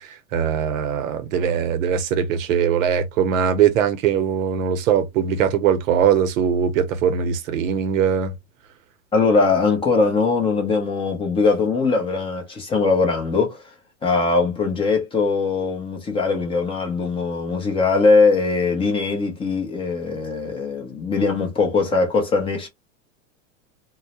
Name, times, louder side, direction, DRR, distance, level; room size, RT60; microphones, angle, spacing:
voice 1, 0.0-8.3, right 8 dB, 90° right, 0.7 m, -21 dB
voice 2, 9.1-13.6 14.0-22.7, left 4 dB, 15° left, 0.5 m, -21 dB
2.2 x 2.0 x 2.8 m
supercardioid pair, 140°, 38 cm